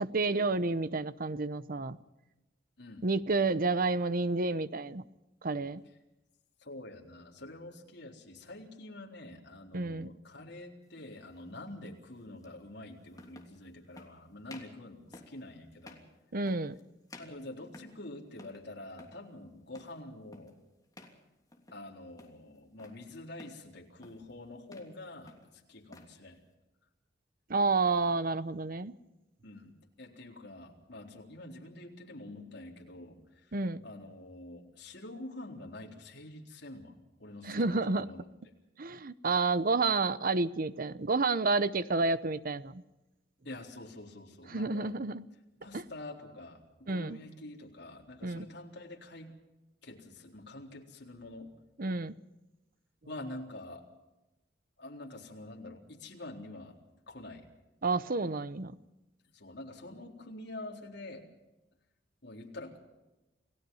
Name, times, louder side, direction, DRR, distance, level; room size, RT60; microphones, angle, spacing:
voice 1, 0.0-2.0 3.0-5.0 5.4-5.8 9.7-10.1 16.3-16.8 27.5-28.9 33.5-33.8 37.4-38.1 38.8-42.8 44.5-45.2 45.7-45.8 46.9-47.2 48.2-48.5 51.8-52.2 57.8-58.8, right 3 dB, 50° right, 14 dB, 0.9 m, -30 dB
voice 2, 6.6-16.0 17.2-20.5 21.7-26.4 29.4-33.5 33.8-38.3 43.4-44.9 45.6-49.3 49.8-51.5 53.1-53.9 54.8-56.8 57.1-57.5 59.3-61.3 62.2-62.8, left 2 dB, 65° left, 0 dB, 4.0 m, -47 dB
sound 1, 10.9-11.1 12.4-12.5 13.1-13.6 13.9-14.2 14.5-14.8 15.1-15.4 15.8-16.1 16.5-16.8 17.1-18.1 18.4-18.7 18.9-19.2 19.7-20.0 20.3-20.6 20.9-21.2 21.5-21.9 22.2-23.0 23.4-23.7 24.0-24.3 24.6-25.0 25.3-26.1, left 1 dB, 20° left, 3.2 m, -53 dB
29.0 x 17.5 x 5.7 m, 0.99 s
head